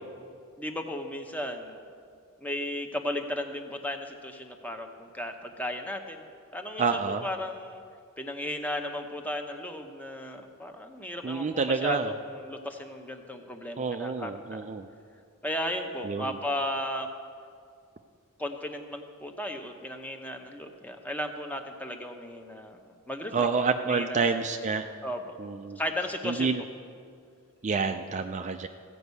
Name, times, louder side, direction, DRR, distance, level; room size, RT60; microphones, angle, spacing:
voice 1, 0.6-1.8 2.4-7.8 8.2-14.6 15.4-17.1 18.4-22.8 23.1-24.3 25.0-25.4 25.8-26.5, left 1 dB, 5° left, 4 dB, 0.7 m, -35 dB
voice 2, 6.8-7.3 11.2-12.1 13.8-14.9 16.0-16.3 23.3-24.8 25.4-25.8 26.2-26.6 27.6-28.7, right 5 dB, 35° right, 7 dB, 0.4 m, -28 dB
15.5 x 5.3 x 8.1 m, 2.3 s
head